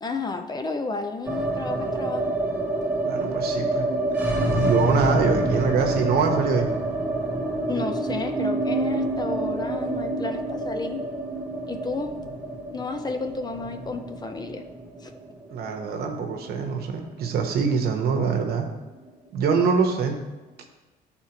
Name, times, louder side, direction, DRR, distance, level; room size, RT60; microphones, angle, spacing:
voice 1, 0.0-2.3 7.7-11.1 11.7-12.1 12.7-14.6 15.0-15.1, left 3 dB, 25° left, 5 dB, 0.6 m, -32 dB
sound 1, 1.2-17.4 17.6-17.7 18.0-18.7, right 2 dB, 10° right, 1.0 m, -27 dB
voice 2, 3.0-3.9 4.5-6.7 15.5-18.7 19.3-20.2, right 5 dB, 65° right, 3 dB, 1.1 m, -24 dB
11.0 x 4.3 x 2.9 m, 1.2 s
cardioid pair, 110°, 17 cm